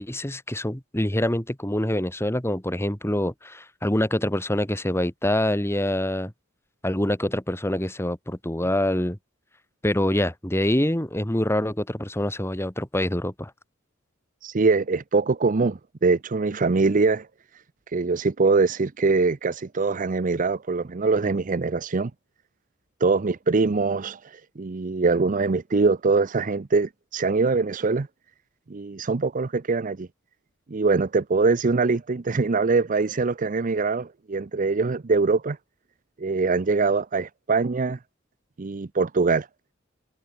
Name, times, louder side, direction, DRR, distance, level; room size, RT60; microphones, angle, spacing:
voice 1, 0.0-6.3 6.8-9.2 9.8-13.5, left 1 dB, 10° left, 2.1 m, -25 dB
voice 2, 14.4-17.3 17.9-22.1 23.0-24.2 24.6-28.1 28.7-30.1 30.7-35.6 36.2-38.0 38.6-39.5, right 4 dB, 40° right, 0.6 m, -23 dB
head